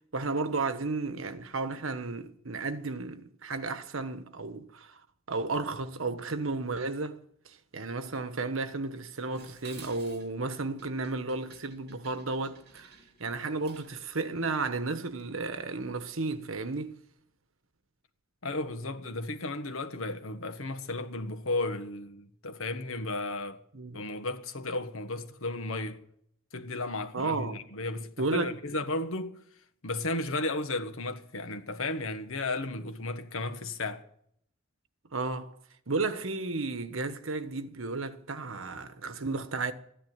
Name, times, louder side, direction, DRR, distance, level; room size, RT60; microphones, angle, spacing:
voice 1, 0.1-5.0 5.3-7.2 7.4-12.9 13.2-17.0 23.7-24.0 27.1-27.6 28.2-28.5 35.1-35.6 35.9-39.7, right 3 dB, 75° right, 1.3 m, -33 dB
Dishes pots and pans, 9.3-14.0, right 5 dB, 55° right, 2.7 m, -53 dB
voice 2, 18.4-23.6 23.9-26.0 26.5-29.4 29.8-34.1, left 2 dB, 85° left, 1.5 m, -34 dB
14.0 x 10.5 x 9.3 m
head